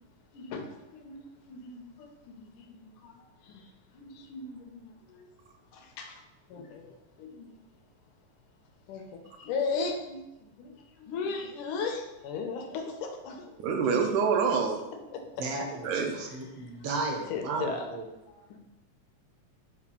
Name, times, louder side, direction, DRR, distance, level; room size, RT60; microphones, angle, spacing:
voice 1, 0.3-3.2 3.4-5.3 5.7-6.2 6.5-7.5 8.9-10.7 11.0-13.6 14.5-14.6 15.1-15.4 15.8-16.1 16.6-16.7 17.3-17.8 18.3-18.4, left 4 dB, 90° left, 3 dB, 2.3 m, -37 dB
voice 2, 13.6-14.8 15.8-16.2, right 5 dB, 85° right, 3 dB, 2.1 m, -26 dB
voice 3, 15.4-18.0, right 3 dB, 70° right, 2 dB, 1.5 m, -34 dB
7.1 x 2.4 x 5.4 m, 0.97 s
omnidirectional pair, 3.5 m